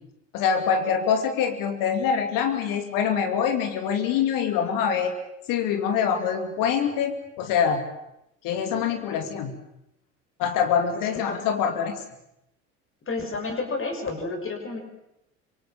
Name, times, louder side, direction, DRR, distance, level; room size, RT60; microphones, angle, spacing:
voice 1, 0.3-5.1 5.5-7.8 8.4-9.5 10.4-12.0, left 7 dB, 55° left, 7 dB, 2.6 m, -24 dB
voice 2, 10.9-11.4 13.1-14.8, left 3 dB, 30° left, 5 dB, 5.9 m, -31 dB
25.0 x 24.0 x 7.3 m, 0.82 s
figure-of-eight pair, 60°, 40 cm